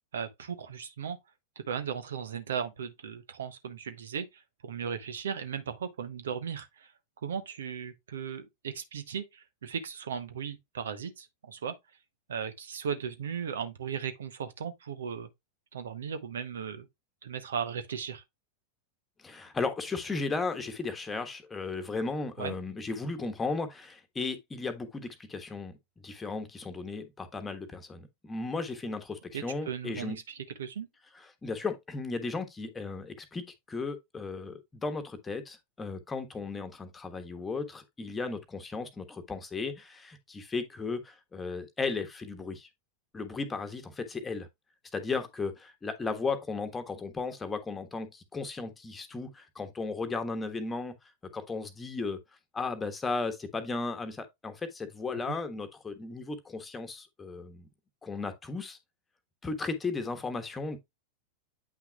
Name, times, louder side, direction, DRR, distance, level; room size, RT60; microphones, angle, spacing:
voice 1, 0.1-1.2 1.6-6.9 7.2-11.7 12.3-15.3 15.7-16.9 17.2-18.2 22.4-22.5 29.3-30.9 55.3-55.4, right 7 dB, 65° right, 0.8 m, -37 dB
voice 2, 19.2-25.8 26.0-30.2 31.1-42.7 43.1-44.5 44.9-50.9 51.2-52.2 52.5-57.7 58.0-58.8 59.4-60.8, left 4 dB, 15° left, 1.3 m, -35 dB
8.6 x 5.9 x 2.3 m
figure-of-eight pair, 90°, 0 cm